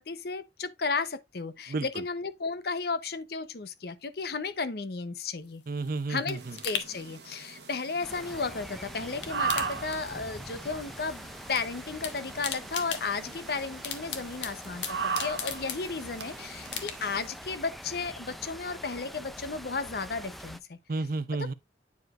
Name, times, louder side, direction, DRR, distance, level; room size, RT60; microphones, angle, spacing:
voice 1, 0.0-5.6 6.1-20.8, left 4 dB, 55° left, 0.7 m, -34 dB
sound 1, 5.5-8.7 9.0-10.5 10.8-11.6 11.9-16.2 16.6-17.3 17.7-17.8, left 8 dB, 80° left, 1.2 m, -39 dB
voice 2, 5.7-6.6 20.9-21.5, right 3 dB, 50° right, 0.6 m, -31 dB
sound 2, 6.4-17.3, right 6 dB, 65° right, 1.0 m, -39 dB
sound 3, 8.0-20.6, equal, ahead, 0.4 m, -44 dB
9.3 x 4.9 x 2.4 m
head